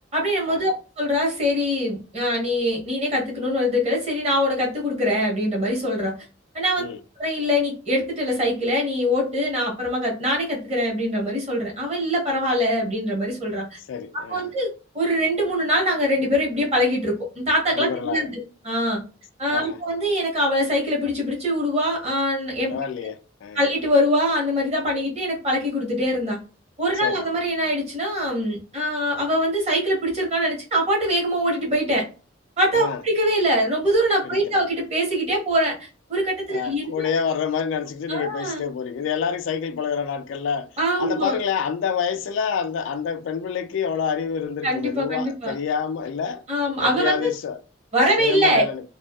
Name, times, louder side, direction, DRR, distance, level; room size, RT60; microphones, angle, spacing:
voice 1, 0.1-6.1 6.5-6.8 7.2-13.8 14.1-14.7 14.9-18.3 18.6-19.0 19.4-22.7 23.5-26.4 26.8-32.0 32.6-37.1 38.1-38.6 40.8-41.4 44.6-45.5 46.5-47.3 47.9-48.6, equal, 30° right, 1.0 m, -23 dB
voice 2, 13.9-14.5 17.7-18.3 19.5-19.8 22.6-23.6 27.0-27.2 32.7-33.0 34.2-34.6 36.5-40.7 41.0-46.4 46.8-47.6 48.2-48.8, left 6 dB, 70° left, 0.3 m, -27 dB
2.5 x 2.4 x 2.2 m
head